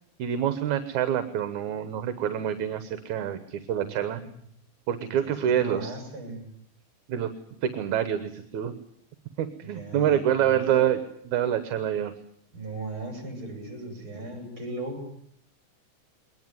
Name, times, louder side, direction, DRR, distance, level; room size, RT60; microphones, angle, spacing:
voice 1, 0.2-4.2 4.9-6.0 7.1-7.3 7.6-8.7 9.4-12.1, right 9 dB, 75° right, 10 dB, 2.5 m, -26 dB
voice 2, 3.8-4.3 5.1-6.5 9.6-10.6 12.5-15.1, right 2 dB, 40° right, 5 dB, 7.4 m, -38 dB
22.0 x 20.0 x 9.5 m, 0.68 s
omnidirectional pair, 3.5 m